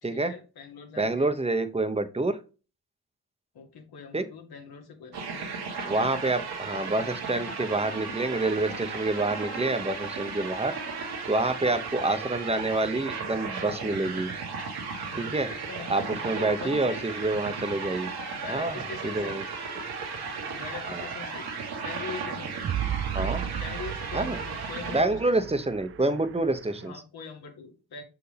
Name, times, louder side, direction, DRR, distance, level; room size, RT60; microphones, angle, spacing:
voice 1, 0.0-1.3 3.5-5.5 14.9-17.0 18.3-19.4 20.5-21.5 21.8-22.7 23.6-25.3 26.8-28.0, left 6 dB, 65° left, 3 dB, 1.8 m, -42 dB
voice 2, 1.0-2.4 4.1-4.3 5.8-10.7 11.3-14.3 15.2-15.5 15.9-18.1 18.5-19.4 20.9-21.1 23.1-23.4 24.1-24.4 24.9-26.9, right 2 dB, 15° right, 9 dB, 1.0 m, -27 dB
sound 1, 5.1-25.0, right 4 dB, 65° right, 1.9 m, -35 dB
sound 2, 19.9-26.9, right 11 dB, 35° right, 0.4 m, -37 dB
6.2 x 4.8 x 3.4 m, 0.33 s
supercardioid pair, 55°, 40 cm